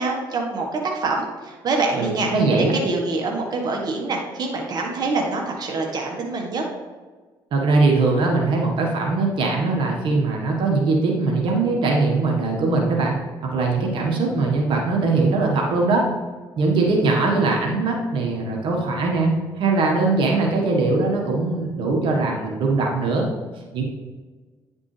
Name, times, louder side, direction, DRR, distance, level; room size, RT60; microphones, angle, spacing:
voice 1, 0.0-2.3 2.7-6.6, right 3 dB, 50° right, 0 dB, 1.4 m, -25 dB
voice 2, 2.0-2.7 7.5-16.0 16.6-23.3 23.7-23.8, right 3 dB, 65° right, 0 dB, 1.5 m, -21 dB
9.8 x 5.1 x 3.3 m, 1.4 s
cardioid pair, 85°, 9 cm